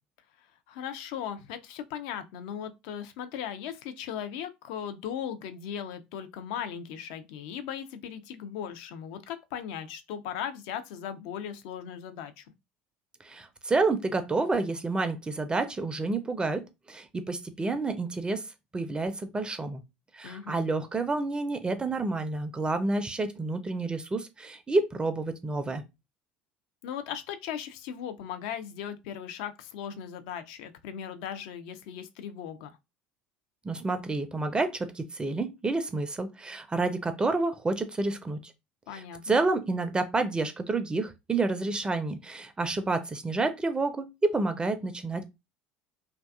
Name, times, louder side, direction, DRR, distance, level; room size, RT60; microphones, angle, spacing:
voice 1, 0.4-12.4 20.2-20.6 26.8-32.8 38.9-39.4, left 9 dB, 65° left, 0.4 m, -38 dB
voice 2, 13.2-18.5 18.7-19.8 20.1-25.8 33.6-38.5 38.9-45.3, right 3 dB, 20° right, 0.4 m, -29 dB
2.5 x 2.3 x 2.3 m
hypercardioid pair, 70°, 5 cm